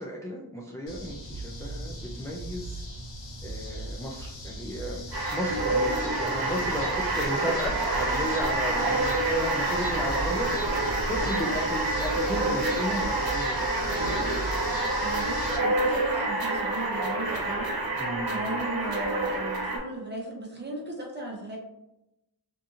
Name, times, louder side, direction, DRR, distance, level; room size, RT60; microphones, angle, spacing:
voice 1, 0.0-2.8 3.4-10.5 10.8-14.4 18.0-18.4, equal, 10° left, -3 dB, 0.3 m, -34 dB
sound 1, 0.9-15.6, right 1 dB, 75° left, 0.8 m, -38 dB
sound 2, 5.1-19.8, right 2 dB, 55° right, 0.8 m, -28 dB
voice 2, 15.0-21.6, right 2 dB, 25° right, -2 dB, 0.8 m, -37 dB
2.7 x 2.6 x 2.5 m, 0.90 s
wide cardioid pair, 65°, 44 cm